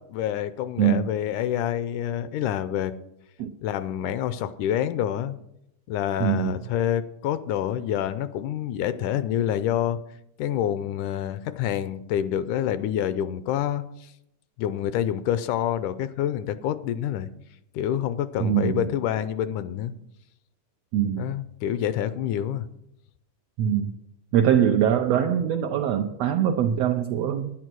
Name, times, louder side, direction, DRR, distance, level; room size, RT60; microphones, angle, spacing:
voice 1, 0.1-2.9 3.6-5.4 5.9-10.0 10.4-14.1 14.6-17.3 17.7-19.9 21.2-22.7, left 10 dB, 80° left, 13 dB, 2.0 m, -27 dB
voice 2, 0.8-1.1 3.4-3.5 6.2-6.5 18.4-18.8 20.9-21.3 23.6-23.9 24.3-27.5, right 9 dB, 85° right, 6 dB, 1.5 m, -23 dB
11.0 x 10.0 x 6.1 m, 0.81 s
omnidirectional pair, 3.7 m